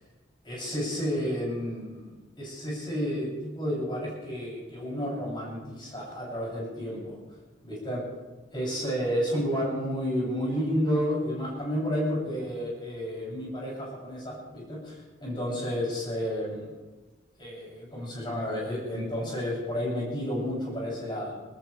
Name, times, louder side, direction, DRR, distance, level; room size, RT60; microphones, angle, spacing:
voice 1, 0.4-7.2 7.6-8.0 8.5-16.7 17.4-21.3, equal, 25° left, -5 dB, 7.7 m, -31 dB
28.5 x 14.5 x 3.4 m, 1.2 s
head